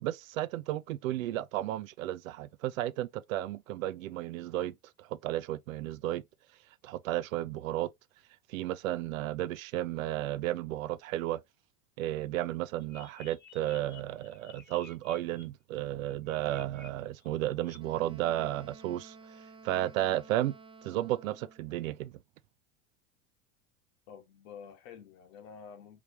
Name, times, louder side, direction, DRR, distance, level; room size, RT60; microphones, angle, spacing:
voice 1, 0.0-6.2 6.8-7.9 8.5-11.4 12.0-19.2 19.6-20.6 20.8-22.1, right 14 dB, 75° right, 0.6 m, -33 dB
sound 1, 12.8-15.4 16.0-16.9 17.2-17.8, left 5 dB, 25° left, 1.2 m, -53 dB
Wind instrument woodwind instrument, 17.8-21.7, right 4 dB, 15° right, 0.6 m, -53 dB
voice 2, 24.1-26.0, left 7 dB, 70° left, 1.6 m, -49 dB
4.8 x 3.3 x 2.8 m
hypercardioid pair, 90°, 40 cm